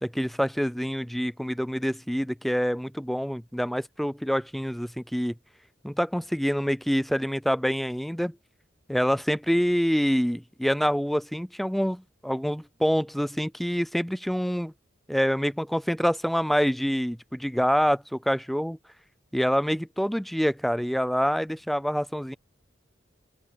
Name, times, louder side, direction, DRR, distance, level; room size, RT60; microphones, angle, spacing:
voice 1, 0.0-5.3 5.8-8.3 8.9-14.7 15.1-18.8 19.3-22.4, equal, ahead, 0.4 m, -26 dB
head